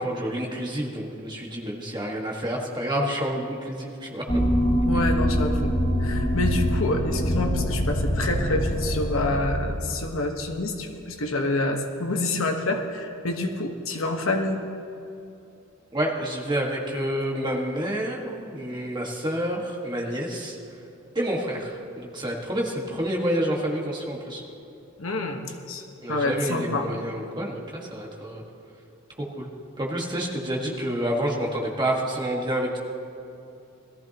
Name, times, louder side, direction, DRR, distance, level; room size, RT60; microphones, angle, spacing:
voice 1, 0.0-4.2 15.9-20.6 21.2-24.4 26.0-28.4 29.4-29.5 29.8-32.8, right 1 dB, 20° right, -1 dB, 1.6 m, -28 dB
sound 1, 4.3-9.5, equal, 30° left, 1.5 m, -24 dB
voice 2, 4.9-5.7 6.0-14.6 25.0-25.8 26.1-26.8, left 2 dB, 70° left, 4 dB, 1.2 m, -27 dB
21.0 x 14.0 x 2.9 m, 2.8 s
head